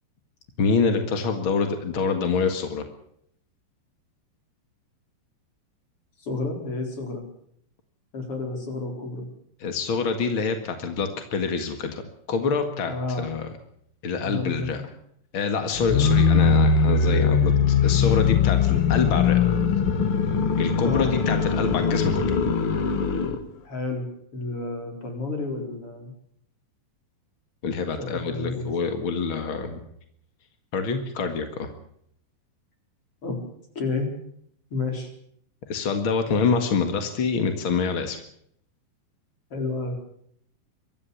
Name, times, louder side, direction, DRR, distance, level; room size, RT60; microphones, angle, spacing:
voice 1, 0.6-2.8 9.6-12.0 12.3-13.5 14.0-14.8 15.3-19.5 20.6-22.3 27.6-29.8 30.7-31.7 35.7-38.2, left 5 dB, 50° left, 7 dB, 1.6 m, -26 dB
voice 2, 6.2-7.2 8.1-9.3 12.8-13.3 14.2-14.8 15.9-16.2 20.8-21.1 23.6-26.1 28.0-28.7 33.2-33.4 33.7-34.1 34.7-35.1 39.5-40.0, left 3 dB, 30° left, 4 dB, 4.8 m, -30 dB
sound 1, 15.7-23.4, left 6 dB, 85° left, 1.2 m, -21 dB
23.5 x 14.0 x 8.4 m, 0.70 s
omnidirectional pair, 5.0 m